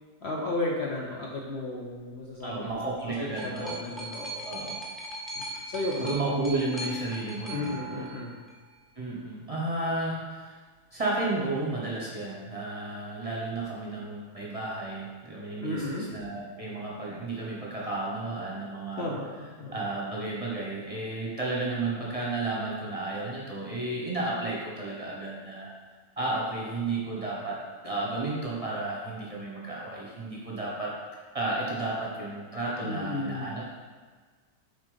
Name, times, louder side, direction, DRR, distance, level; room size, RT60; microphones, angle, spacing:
voice 1, 0.2-4.4 5.4-6.1 7.5-8.4 15.6-16.1 19.0-19.8 32.8-33.5, left 2 dB, 55° left, -2 dB, 0.9 m, -34 dB
voice 2, 2.4-3.8 4.4-4.7 6.0-8.0 9.0-10.5 10.9-19.1 19.7-25.7 26.2-27.6 27.8-30.9 31.3-33.7, right 2 dB, 25° right, -5 dB, 1.1 m, -32 dB
sound 1, 2.9-8.7 9.6-9.7, right 1 dB, ahead, 0.6 m, -40 dB
7.4 x 3.9 x 5.1 m, 1.5 s
omnidirectional pair, 1.6 m